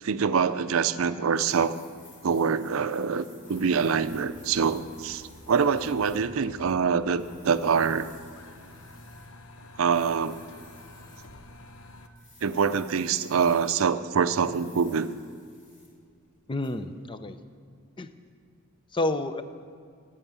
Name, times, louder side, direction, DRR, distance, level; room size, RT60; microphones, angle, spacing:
voice 1, 0.0-1.8 2.2-8.1 9.8-10.4 12.4-15.1, right 6 dB, 70° right, 13 dB, 0.5 m, -25 dB
sound 1, 1.3-6.2 7.2-9.3 9.8-11.3 12.1-13.8 14.3-16.0 16.6-16.7, left 2 dB, 40° left, 3.6 m, -55 dB
sound 2, 3.4-12.1, left 1 dB, 85° left, 0.9 m, -50 dB
voice 2, 16.5-17.4 18.0-18.1 18.9-19.4, left 2 dB, 25° left, 11 dB, 0.5 m, -29 dB
9.1 x 8.2 x 9.4 m, 2.3 s
head